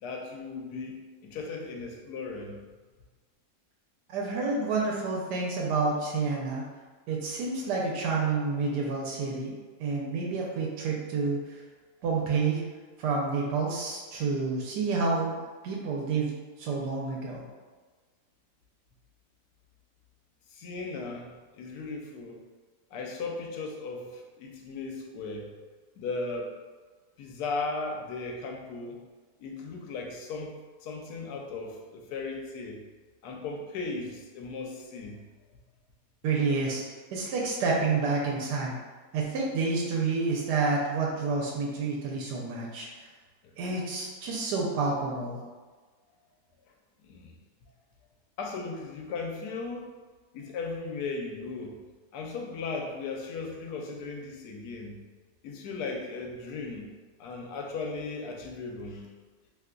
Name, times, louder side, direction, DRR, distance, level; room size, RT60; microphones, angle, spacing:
voice 1, 0.0-2.6 20.5-22.4 22.9-25.5 26.0-26.5 27.2-29.0 29.4-30.5 30.8-32.8 33.2-35.2 43.4-43.5 47.0-47.3 48.4-49.9 50.3-51.8 52.1-55.0 55.4-56.9 57.2-59.1, left 3 dB, 75° left, 1 dB, 1.1 m, -37 dB
voice 2, 4.1-6.6 7.1-11.4 12.0-12.6 13.0-15.4 15.6-16.3 16.6-17.5 36.2-36.8 37.1-38.8 39.1-42.9 43.6-45.4, right 4 dB, 85° right, -2 dB, 1.2 m, -29 dB
2.9 x 2.2 x 3.6 m, 1.4 s
omnidirectional pair, 1.7 m